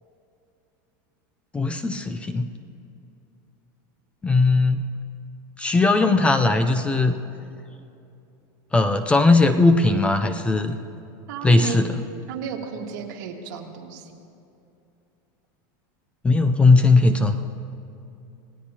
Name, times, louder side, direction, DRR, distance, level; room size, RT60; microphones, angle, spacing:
voice 1, 1.5-2.5 4.2-4.8 5.6-7.1 8.7-10.8 11.4-11.9 16.2-17.4, left 3 dB, 10° left, 8 dB, 0.5 m, -18 dB
voice 2, 11.3-11.8 12.3-14.1, right 7 dB, 65° right, 2 dB, 1.8 m, -33 dB
26.5 x 18.0 x 2.9 m, 2.7 s
supercardioid pair, 155°, 11 cm